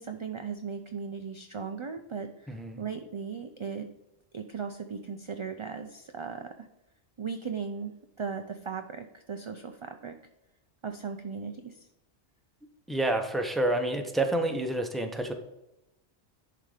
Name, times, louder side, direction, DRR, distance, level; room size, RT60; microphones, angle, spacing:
voice 1, 0.0-3.9 4.3-6.7 7.2-10.2 10.8-11.9, right 6 dB, 40° right, 6 dB, 0.4 m, -37 dB
voice 2, 2.5-2.8 12.9-15.3, right 1 dB, ahead, 4 dB, 0.7 m, -28 dB
11.0 x 3.9 x 5.0 m, 0.92 s
omnidirectional pair, 1.1 m